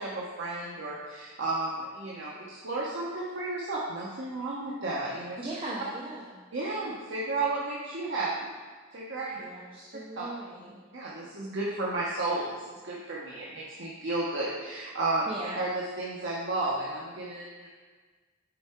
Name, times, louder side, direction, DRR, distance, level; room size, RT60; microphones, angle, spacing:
voice 1, 0.0-5.4 6.5-8.5 8.9-9.4 10.2-10.3 10.9-15.3 15.6-17.7, right 2 dB, 60° right, -5 dB, 1.0 m, -33 dB
voice 2, 5.4-6.4 9.4-10.8 15.3-15.6, right 2 dB, 25° right, -7 dB, 0.8 m, -39 dB
6.9 x 4.7 x 4.5 m, 1.4 s
head